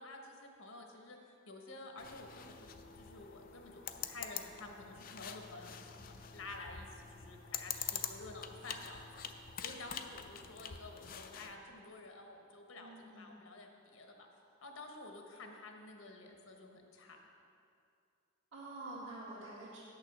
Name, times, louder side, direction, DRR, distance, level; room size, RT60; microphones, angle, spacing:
voice 1, 0.0-2.7 2.9-9.1 9.6-14.3 14.6-17.2, left 2 dB, 85° left, 2 dB, 1.2 m, -51 dB
sound 1, 2.0-11.6, left 8 dB, 45° left, 0.5 m, -46 dB
voice 2, 12.7-13.4 18.5-19.8, right 2 dB, 65° right, -9 dB, 2.0 m, -48 dB
8.8 x 6.7 x 6.0 m, 2.5 s
head